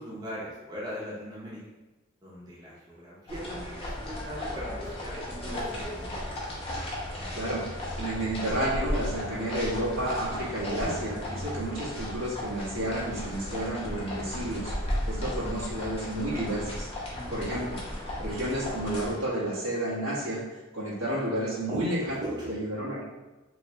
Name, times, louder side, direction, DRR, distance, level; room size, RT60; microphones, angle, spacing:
voice 1, 0.0-1.6 2.2-6.4 15.0-15.5 17.1-17.6 21.7-22.5, equal, 20° right, -7 dB, 0.9 m, -40 dB
sound 1, 3.3-19.1, left 1 dB, 30° left, 0.8 m, -35 dB
voice 2, 7.3-7.7 8.0-14.7 15.1-16.9 17.3-17.8 18.2-20.4 20.7-23.0, right 1 dB, 85° right, -7 dB, 1.3 m, -31 dB
3.0 x 3.0 x 3.1 m, 1.1 s
head